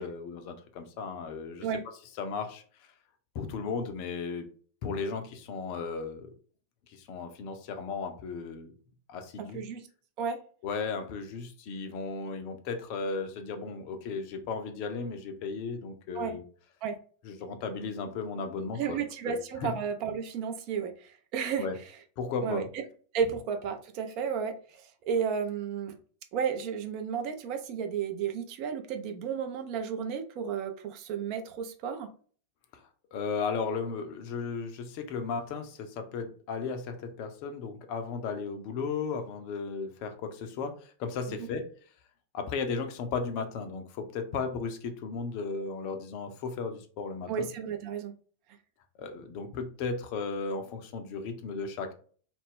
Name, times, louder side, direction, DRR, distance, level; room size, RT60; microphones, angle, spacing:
voice 1, 0.0-1.7 2.2-2.6 3.3-4.5 4.8-6.3 6.9-8.7 9.1-9.6 10.6-16.4 17.2-19.0 19.3-19.7 21.6-21.8 22.2-22.7 33.1-41.7 42.3-47.5 49.0-51.9, left 5 dB, 45° left, 7 dB, 0.5 m, -35 dB
voice 2, 9.4-9.8 10.2-10.4 16.1-16.4 16.8-17.0 18.8-21.7 22.4-22.6 23.1-25.9 26.3-32.1 41.3-41.4 47.3-48.1, right 7 dB, 45° right, 6 dB, 0.5 m, -33 dB
2.4 x 2.0 x 3.5 m, 0.43 s
figure-of-eight pair, 90°, 0 cm